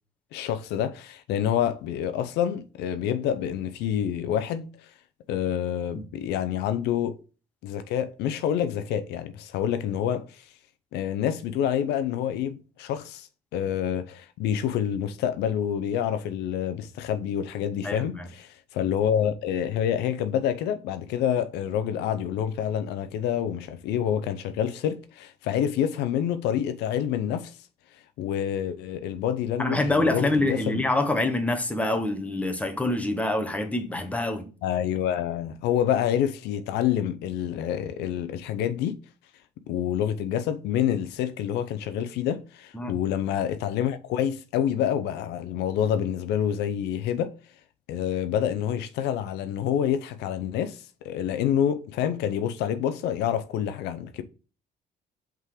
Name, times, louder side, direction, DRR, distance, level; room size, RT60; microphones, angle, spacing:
voice 1, 0.3-4.7 5.3-7.2 7.6-10.4 10.9-13.3 13.5-27.5 28.2-30.8 34.6-39.0 39.7-47.3 47.9-54.2, left 9 dB, 85° left, 0.6 m, -27 dB
voice 2, 17.8-18.3 29.6-34.4 42.7-42.9, left 2 dB, 10° left, 1.0 m, -26 dB
5.4 x 3.8 x 4.8 m
cardioid pair, 110°, 17 cm